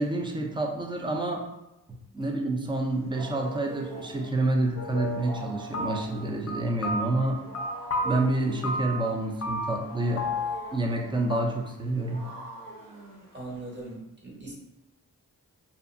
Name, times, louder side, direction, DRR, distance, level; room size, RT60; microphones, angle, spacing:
voice 1, 0.0-1.4 2.1-7.4 8.0-10.3 10.7-12.3, right 2 dB, 15° right, 1 dB, 0.4 m, -28 dB
Wild animals, 2.7-13.9, right 2 dB, 60° right, 0.7 m, -45 dB
sound 1, 4.8-5.5 5.7-6.2 6.5-8.2 8.6-9.1 9.4-9.9 10.2-11.0 11.3-11.4, left 1 dB, 45° left, 0.4 m, -32 dB
voice 2, 13.3-14.5, right 2 dB, 30° right, -4 dB, 1.1 m, -40 dB
2.6 x 2.3 x 2.5 m, 0.91 s
cardioid pair, 50°, 37 cm